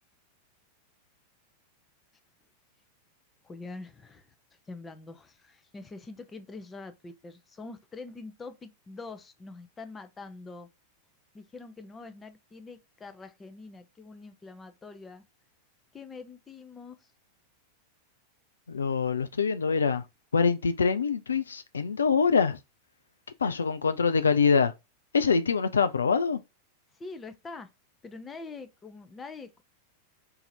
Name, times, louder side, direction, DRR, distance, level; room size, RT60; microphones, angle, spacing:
voice 1, 3.4-4.3 4.7-10.7 11.3-15.2 15.9-17.1 26.9-27.7 28.0-29.6, left 3 dB, 15° left, 0.6 m, -44 dB
voice 2, 18.7-20.0 20.3-22.6 23.4-24.7 25.1-26.4, left 5 dB, 70° left, 0.4 m, -24 dB
3.9 x 2.8 x 4.3 m
figure-of-eight pair, 90°, 0 cm